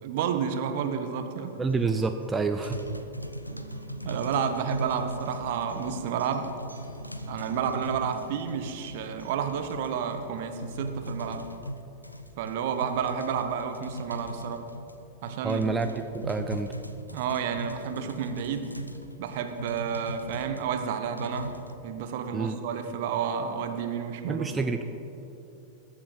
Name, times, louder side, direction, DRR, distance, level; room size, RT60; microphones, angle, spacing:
voice 1, 0.0-1.6 4.0-6.5 7.3-11.4 12.4-14.6 15.2-15.6 17.1-18.7 19.2-21.5 21.8-24.5, right 7 dB, 50° right, 7 dB, 1.1 m, -30 dB
Acoustic guitar, 1.5-9.5, right 3 dB, 85° right, 1.6 m, -48 dB
voice 2, 1.6-2.8 15.4-16.7 22.3-22.6 24.3-24.8, right 4 dB, 15° right, 6 dB, 0.6 m, -28 dB
sound 1, 2.6-20.7 21.2-21.8, equal, 85° left, 0.6 m, -39 dB
21.0 x 7.2 x 5.2 m, 2.9 s
figure-of-eight pair, 90°, 0 cm